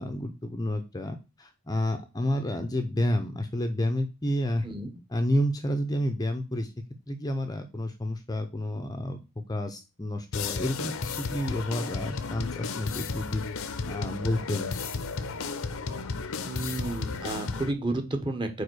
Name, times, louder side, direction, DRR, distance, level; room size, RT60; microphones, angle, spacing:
voice 1, 0.0-4.7 5.1-6.7 7.1-9.2 9.5-13.4 13.9-14.7, left 1 dB, 15° left, 6 dB, 0.6 m, -30 dB
sound 1, 10.3-17.7, left 4 dB, 65° left, 0.7 m, -33 dB
voice 2, 16.4-18.6, right 2 dB, 20° right, 6 dB, 1.0 m, -31 dB
5.0 x 4.8 x 6.2 m, 0.28 s
head